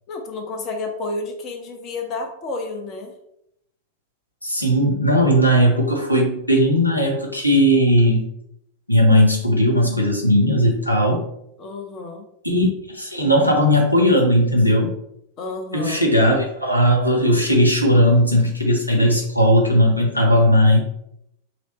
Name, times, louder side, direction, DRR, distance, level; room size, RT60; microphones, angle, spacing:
voice 1, 0.1-3.1 11.6-12.3 15.4-16.1 19.1-19.2, left 3 dB, 35° left, 3 dB, 0.7 m, -31 dB
voice 2, 4.4-8.3 8.9-11.2 12.4-12.7 12.9-14.9 15.7-20.8, equal, 85° left, 0 dB, 0.8 m, -17 dB
3.1 x 2.9 x 4.0 m, 0.77 s
figure-of-eight pair, 90°, 0 cm